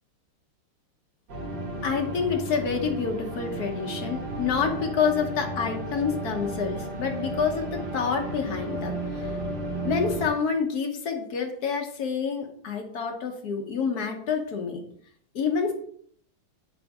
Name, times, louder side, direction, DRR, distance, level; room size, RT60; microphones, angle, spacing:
sound 1, 1.3-10.3, right 1 dB, 60° right, 2.2 m, -33 dB
voice 1, 1.8-9.3 9.8-14.8 15.3-15.7, left 6 dB, 55° left, 3 dB, 1.2 m, -28 dB
7.1 x 3.8 x 5.2 m, 0.63 s
omnidirectional pair, 2.4 m